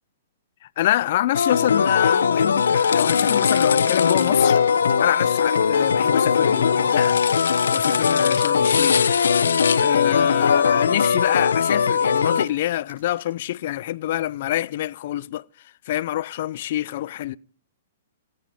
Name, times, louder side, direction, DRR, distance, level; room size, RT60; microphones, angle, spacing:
voice 1, 0.8-4.6 5.0-7.2 7.7-9.2 9.8-15.4 15.9-17.4, left 13 dB, 55° left, 0.7 m, -26 dB
sound 1, 1.3-12.5, left 6 dB, 80° left, 1.2 m, -19 dB
sound 2, 2.9-3.6 3.9-13.3, right 5 dB, 75° right, 5.1 m, -45 dB
28.0 x 9.6 x 5.1 m
hypercardioid pair, 130°, 0 cm